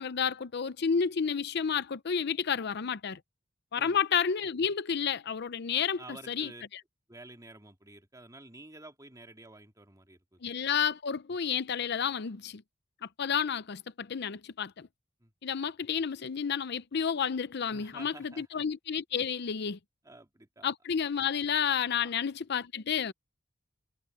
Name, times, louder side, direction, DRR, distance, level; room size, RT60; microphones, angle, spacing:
voice 1, 0.0-3.2 3.7-6.0 6.3-6.5 10.4-12.6 13.0-14.9 15.4-19.8 20.6-23.1, left 7 dB, 55° left, 0.6 m, -31 dB
voice 2, 6.0-6.6 7.1-10.4 15.2-15.3 17.7-18.7 20.0-20.7 22.0-22.1, right 2 dB, 20° right, 2.1 m, -51 dB
head